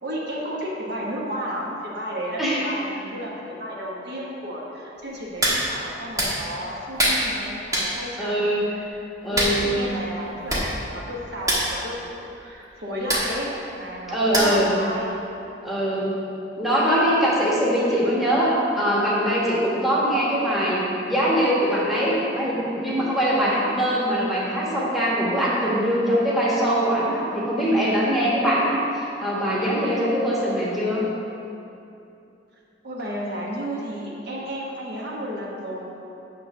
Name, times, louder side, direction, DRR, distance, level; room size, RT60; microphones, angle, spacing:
voice 1, 0.0-15.1 32.8-35.8, equal, 65° right, -4 dB, 1.3 m, -32 dB
Hands, 5.4-5.6 6.2-6.3 7.0-7.2 7.7-7.9 9.4-9.6 10.2-10.3 10.5-10.7 10.9-11.1 11.4-11.6 13.1-13.3 14.3-14.7 15.1-15.2, right 1 dB, 20° right, 1.4 m, -22 dB
voice 2, 8.2-8.6 9.2-9.8 14.1-14.7 15.6-16.1 16.6-20.8 21.1-31.0, equal, ahead, -7 dB, 1.4 m, -22 dB
8.8 x 3.3 x 6.0 m, 2.8 s
head